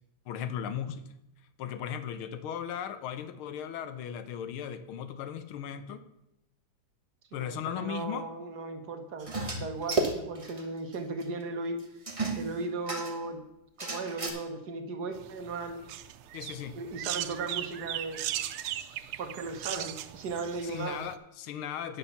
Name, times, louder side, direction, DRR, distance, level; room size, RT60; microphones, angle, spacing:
voice 1, 0.3-1.1 1.6-6.0 7.3-8.3 16.3-16.8 20.6-22.0, left 9 dB, 75° left, 12 dB, 1.6 m, -37 dB
voice 2, 7.5-11.8 12.3-13.4 13.8-15.8 16.7-18.2 19.2-21.1, right 3 dB, 55° right, 6 dB, 1.4 m, -36 dB
sound 1, 9.2-10.6 10.9-11.0 11.2-11.3 12.1-13.3 13.8-14.3, right 3 dB, 20° right, 1.0 m, -32 dB
sound 2, 15.2-21.2, right 12 dB, 85° right, 1.5 m, -38 dB
9.8 x 5.8 x 7.0 m, 0.82 s
omnidirectional pair, 2.4 m